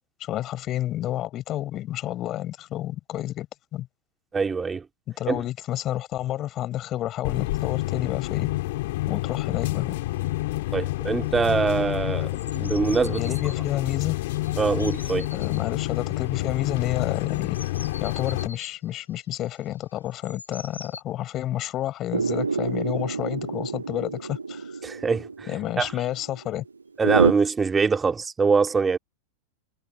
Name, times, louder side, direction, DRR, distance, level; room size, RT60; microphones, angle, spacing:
voice 1, 0.2-3.5 3.7-3.9 5.2-8.5 9.1-9.9 13.2-14.2 15.3-17.6 18.0-24.8 25.5-26.6, left 13 dB, 35° left, 6.0 m, -30 dB
voice 2, 4.3-4.8 5.3-5.4 10.7-13.2 14.6-15.3 24.8-25.5 25.8-25.9 27.0-29.0, right 5 dB, 15° right, 2.5 m, -23 dB
sound 1, 7.2-18.5, left 19 dB, 50° left, 2.7 m, -28 dB
sound 2, 10.1-10.4 10.7-11.0 11.3-13.6 14.3-15.6 16.7-21.0, left 3 dB, 80° left, 7.3 m, -44 dB
sound 3, 22.1-27.3, right 4 dB, 75° right, 1.1 m, -27 dB
figure-of-eight pair, 90°, 0 cm